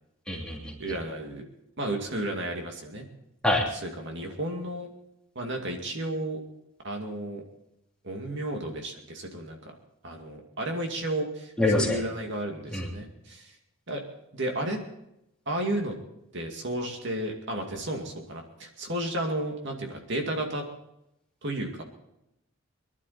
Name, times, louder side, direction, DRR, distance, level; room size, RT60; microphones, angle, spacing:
voice 1, 0.3-0.8 3.4-3.7 11.6-12.0 12.7-12.9, left 2 dB, 5° left, -2 dB, 3.0 m, -25 dB
voice 2, 0.8-1.4 1.8-3.1 3.7-4.9 5.4-6.4 6.8-7.4 8.0-9.7 10.0-13.6 13.9-14.0 14.3-14.8 15.5-15.9 16.3-20.7 21.4-21.8, right 1 dB, 55° right, 2 dB, 2.4 m, -32 dB
23.0 x 12.0 x 4.3 m, 0.83 s
head